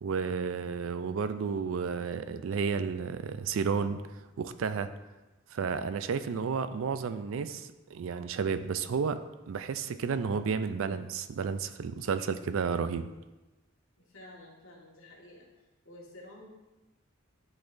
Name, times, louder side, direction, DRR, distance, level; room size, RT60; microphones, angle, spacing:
voice 1, 0.0-4.0 4.4-4.9 5.5-13.1, right 5 dB, 70° right, 11 dB, 0.4 m, -32 dB
voice 2, 14.0-15.5 15.8-16.5, left 1 dB, 70° left, -4 dB, 1.7 m, -51 dB
10.5 x 4.1 x 2.6 m, 1.1 s
head